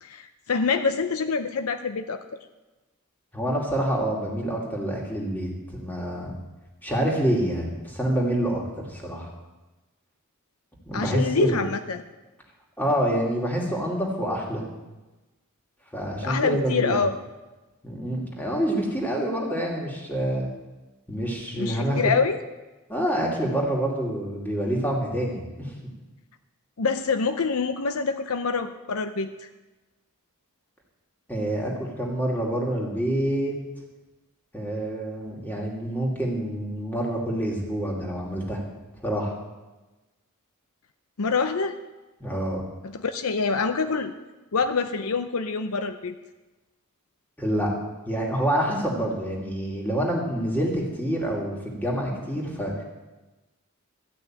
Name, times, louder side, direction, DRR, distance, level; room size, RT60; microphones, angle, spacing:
voice 1, 0.0-2.2 10.9-12.0 16.2-17.1 21.6-22.4 26.8-29.3 41.2-41.8 42.8-44.1 44.5-46.1, left 4 dB, 70° left, 9 dB, 0.6 m, -26 dB
voice 2, 3.3-6.3 6.8-9.3 10.9-11.6 12.8-14.6 15.9-17.0 17.8-20.5 21.1-22.0 22.9-25.7 31.3-33.5 34.5-38.6 39.0-39.3 42.2-42.6 47.4-47.7 48.1-52.8, right 1 dB, 10° left, -2 dB, 2.5 m, -27 dB
13.5 x 6.2 x 8.9 m, 1.1 s
head